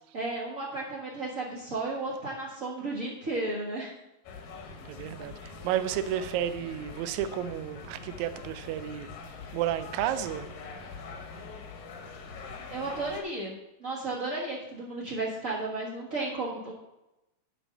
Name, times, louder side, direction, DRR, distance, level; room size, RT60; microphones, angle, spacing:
voice 1, 0.1-3.9 12.7-16.7, right 2 dB, 45° right, -6 dB, 1.0 m, -34 dB
sound 1, 4.3-13.2, left 4 dB, 85° left, 3.0 m, -43 dB
voice 2, 4.8-9.1 9.5-10.5, right 11 dB, 75° right, 10 dB, 1.8 m, -32 dB
9.7 x 5.4 x 6.5 m, 0.94 s
omnidirectional pair, 3.9 m